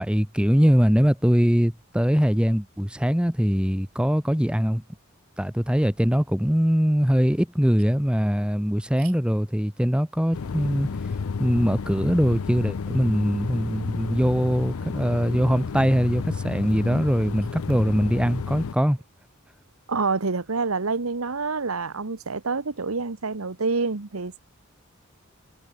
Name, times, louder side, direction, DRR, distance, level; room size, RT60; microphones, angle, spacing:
voice 1, 0.0-4.8 5.4-10.9 11.4-19.0, equal, 5° right, 1.0 m, -22 dB
sound 1, 10.3-18.7, left 5 dB, 85° left, 0.5 m, -32 dB
voice 2, 19.9-24.4, right 4 dB, 85° right, 1.2 m, -27 dB
head